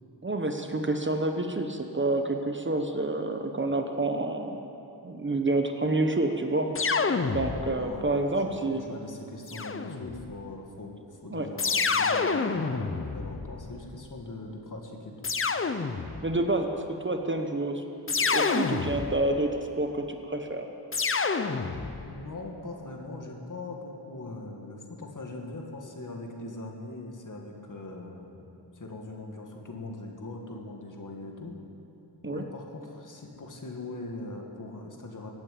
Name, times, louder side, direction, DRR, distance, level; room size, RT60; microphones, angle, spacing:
voice 1, 0.2-4.6 5.0-6.7 7.3-8.8 11.3-11.5 16.2-17.8 18.2-20.7 32.2-32.4, right 2 dB, 30° right, 5 dB, 1.0 m, -28 dB
sound 1, 6.7-8.0 9.5-10.3 11.6-13.9 15.2-16.4 18.1-19.4 20.9-22.1, left 4 dB, 30° left, 0.7 m, -28 dB
voice 2, 7.8-15.1 22.0-31.5 32.2-35.3, left 2 dB, 50° left, 1 dB, 2.1 m, -41 dB
15.5 x 8.9 x 8.6 m, 2.8 s
wide cardioid pair, 90°, 41 cm